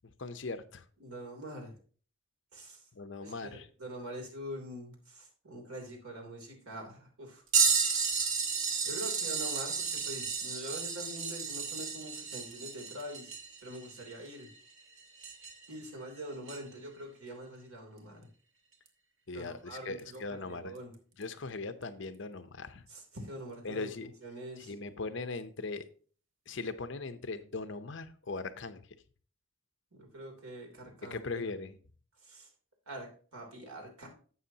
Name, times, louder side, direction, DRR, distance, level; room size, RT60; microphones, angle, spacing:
voice 1, 0.2-0.8 2.9-3.7 19.3-20.7 21.2-22.8 23.6-24.1 24.6-25.9 26.5-28.8 31.0-31.8, left 3 dB, 55° left, 0.7 m, -39 dB
voice 2, 1.0-1.8 2.5-2.9 3.2-7.4 8.8-13.3 13.6-14.5 15.7-18.2 19.3-20.9 22.9-24.7 29.9-31.2 32.2-32.5 32.9-34.1, right 1 dB, 85° right, 3.1 m, -44 dB
sound 1, 7.5-15.7 16.5-16.6 18.9-19.0 20.0-20.2 21.2-21.3, right 5 dB, 65° right, 1.6 m, -32 dB
11.5 x 7.7 x 2.8 m
head